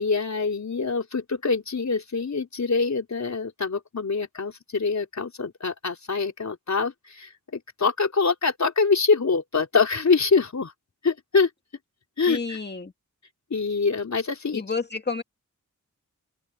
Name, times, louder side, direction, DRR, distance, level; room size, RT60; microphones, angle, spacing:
voice 1, 0.0-10.7 11.0-11.5 12.2-12.6 13.5-14.6, left 4 dB, 60° left, 4.1 m, -25 dB
voice 2, 12.3-12.9 14.5-15.2, left 4 dB, 35° left, 2.2 m, -30 dB
open air
wide cardioid pair, 70°, 32 cm